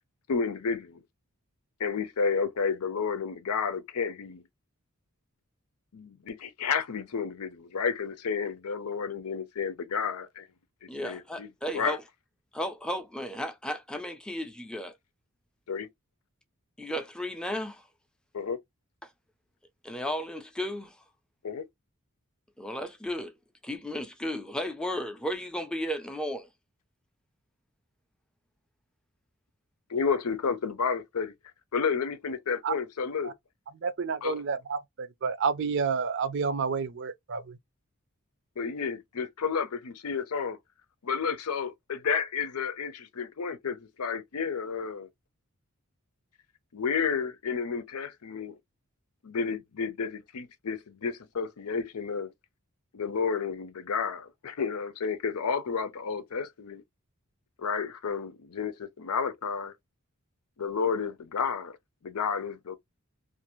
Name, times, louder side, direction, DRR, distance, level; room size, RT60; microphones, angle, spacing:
voice 1, 0.3-1.0 1.8-4.4 5.9-10.5 11.0-12.0 15.7-15.9 18.3-18.6 21.4-21.6 29.9-31.3 31.7-33.3 34.2-34.3 38.6-40.6 41.0-45.1 46.7-48.6 49.2-52.3 52.9-56.8 57.6-59.7 60.6-61.7 62.0-62.8, left 5 dB, 90° left, 0.6 m, -31 dB
voice 2, 10.9-12.0 12.5-14.9 16.8-17.8 19.8-20.9 22.6-23.3 23.6-26.5, equal, 5° left, 0.5 m, -34 dB
voice 3, 33.8-37.6, right 5 dB, 55° right, 0.5 m, -30 dB
2.5 x 2.5 x 3.0 m
head